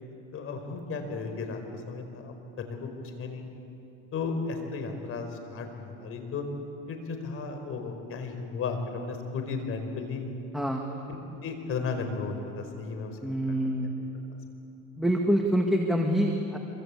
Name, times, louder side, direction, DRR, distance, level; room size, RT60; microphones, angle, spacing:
voice 1, 0.3-3.4 4.1-6.5 6.9-10.3 10.9-13.2 13.5-13.7 14.0-14.1, left 4 dB, 40° left, 6 dB, 4.7 m, -35 dB
voice 2, 10.5-10.9 13.2-13.9 15.0-16.6, equal, ahead, 1 dB, 2.0 m, -26 dB
26.5 x 24.5 x 8.5 m, 2.9 s
supercardioid pair, 125°, 33 cm